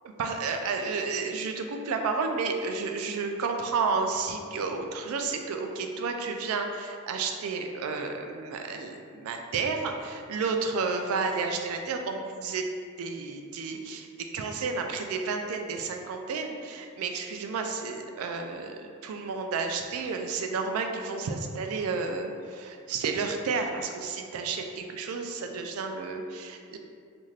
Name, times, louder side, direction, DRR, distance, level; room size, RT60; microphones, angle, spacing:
voice 1, 0.2-12.7 13.0-14.1 14.3-26.8, right 4 dB, 75° right, 4 dB, 0.3 m, -31 dB
3.1 x 2.5 x 2.4 m, 2.2 s
head